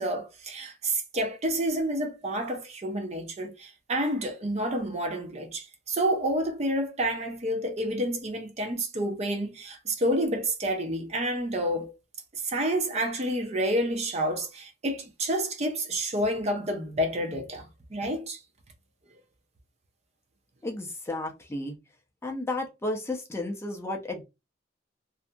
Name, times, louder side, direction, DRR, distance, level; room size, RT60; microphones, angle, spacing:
voice 1, 0.0-11.9 12.4-17.6 17.9-18.4, right 1 dB, 35° right, 0.5 m, -29 dB
voice 2, 20.6-21.8 22.2-24.2, left 2 dB, 15° left, 0.4 m, -33 dB
2.6 x 2.5 x 2.2 m
head